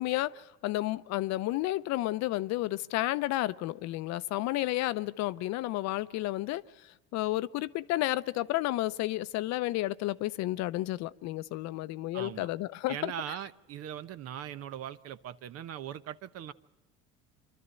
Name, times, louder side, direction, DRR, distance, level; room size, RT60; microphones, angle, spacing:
voice 1, 0.0-13.4, left 17 dB, 65° left, 0.7 m, -32 dB
voice 2, 12.1-12.5 12.9-16.5, right 10 dB, 50° right, 0.9 m, -40 dB
25.5 x 12.5 x 8.9 m
supercardioid pair, 110°, 30 cm